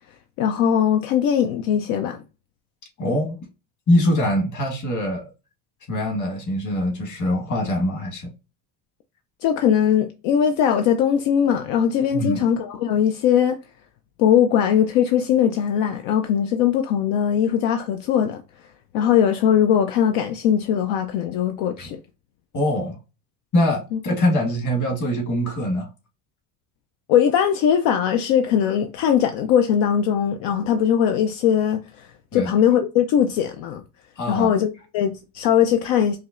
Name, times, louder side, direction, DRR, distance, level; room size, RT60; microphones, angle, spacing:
voice 1, 0.4-2.2 9.4-13.6 14.2-18.4 18.9-22.0 23.9-24.0 27.1-32.1 32.3-33.8 34.3-36.2, left 9 dB, 75° left, 0.6 m, -20 dB
voice 2, 3.0-3.4 3.9-5.3 5.9-8.3 12.1-12.4 21.8-21.9 22.5-23.0 23.5-25.9 32.3-32.5 34.2-34.5, left 1 dB, 45° left, 1.5 m, -23 dB
5.1 x 2.1 x 2.5 m
supercardioid pair, 100°, 43 cm